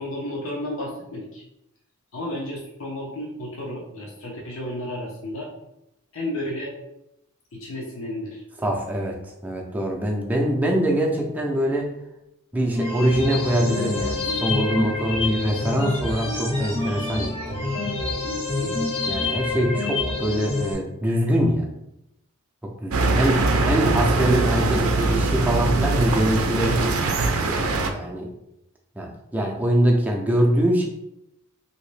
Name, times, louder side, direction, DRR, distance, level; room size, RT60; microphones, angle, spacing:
voice 1, 0.0-1.4 2.1-5.5 6.1-6.7 7.5-8.4 18.6-18.9, left 1 dB, 65° left, -3 dB, 0.8 m, -32 dB
voice 2, 8.6-11.9 12.5-17.6 19.1-21.7 22.6-26.9 27.4-28.3 29.0-30.9, equal, 5° right, 0 dB, 0.5 m, -23 dB
sound 1, 12.7-20.7, left 3 dB, 25° left, 0.8 m, -27 dB
sound 2, 22.9-27.9, right 3 dB, 70° right, 0.4 m, -22 dB
3.0 x 2.8 x 3.2 m, 0.84 s
head